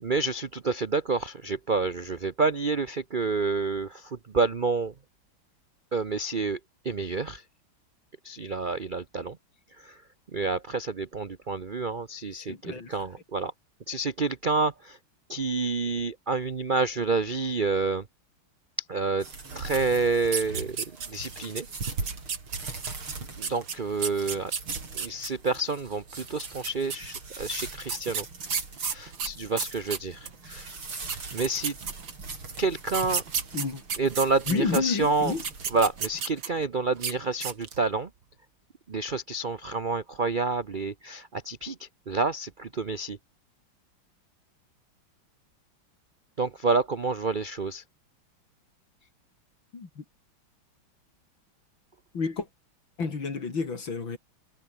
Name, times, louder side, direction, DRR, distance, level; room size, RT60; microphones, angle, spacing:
voice 1, 0.0-4.9 5.9-6.6 6.8-7.4 8.2-9.4 9.8-10.0 10.3-13.5 13.9-15.0 15.3-18.0 18.9-19.3 19.5-20.8 21.1-21.7 23.4-24.5 24.9-28.2 28.9-30.7 31.3-31.7 32.6-33.2 34.0-35.3 35.7-38.1 38.9-43.2 46.4-47.8, right 3 dB, 50° right, 0.6 m, -28 dB
voice 2, 12.5-12.9 33.5-33.8 34.5-35.4 49.7-50.0 52.1-52.5 53.0-54.2, left 4 dB, 70° left, 4.3 m, -30 dB
sound 1, 19.2-36.2, right 4 dB, 85° right, 5.6 m, -40 dB
sound 2, 20.2-21.3 21.6-25.3 26.3-27.2 27.9-30.4 30.8-30.9 31.1-32.3 32.9-34.8 35.3-36.6 37.0-37.1 37.4-37.8, right 6 dB, 65° right, 3.0 m, -32 dB
omnidirectional pair, 2.3 m